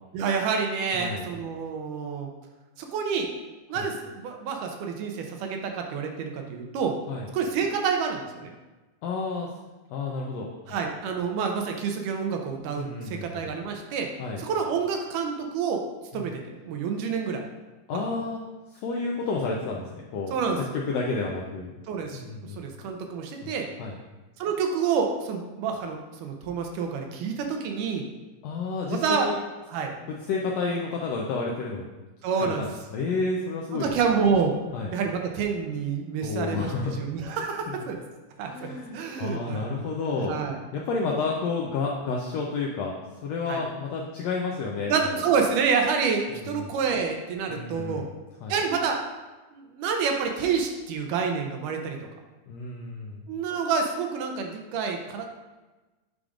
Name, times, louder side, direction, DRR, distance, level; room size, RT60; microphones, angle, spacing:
voice 1, 0.1-2.3 2.8-3.3 3.7-6.9 7.3-8.5 10.7-14.1 14.4-15.8 16.1-17.4 17.9-18.0 20.3-20.6 21.9-22.2 22.6-23.7 24.4-28.1 28.9-29.3 29.7-29.9 32.2-32.6 33.8-34.5 34.9-38.0 38.4-38.7 38.9-40.6 43.5-43.6 44.9-48.1 48.5-49.0 49.5-52.0 53.3-55.3, right 6 dB, 90° right, 3 dB, 2.3 m, -28 dB
voice 2, 0.9-1.3 3.7-3.8 7.1-7.3 9.0-9.5 9.9-10.8 12.8-13.5 14.2-14.4 16.1-16.3 17.9-18.4 18.7-21.7 22.1-22.6 23.4-23.5 23.8-24.0 28.4-29.4 30.3-31.8 32.4-33.9 34.7-34.9 36.2-37.0 37.7-37.8 38.5-43.0 43.2-45.2 46.5-46.7 47.5-48.1 48.4-48.5 52.5-53.2, left 4 dB, 90° left, -1 dB, 1.5 m, -31 dB
9.1 x 4.9 x 2.4 m, 1.2 s
omnidirectional pair, 3.6 m